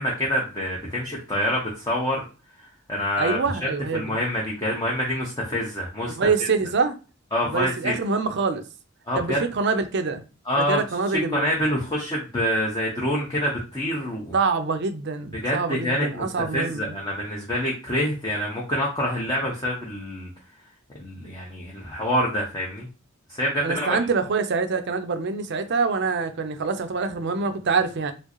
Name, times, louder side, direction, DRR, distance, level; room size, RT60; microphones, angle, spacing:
voice 1, 0.0-2.2 2.6-6.5 7.3-7.9 9.1-9.4 10.5-10.8 11.1-14.4 15.4-16.3 16.5-20.3 20.9-22.9 23.3-24.0, equal, 20° left, 0.7 m, -26 dB
voice 2, 3.2-4.2 6.1-7.0 7.5-8.6 9.1-10.2 10.6-11.5 14.3-16.9 23.6-28.1, right 4 dB, 55° right, 0.5 m, -25 dB
4.5 x 2.0 x 3.0 m
head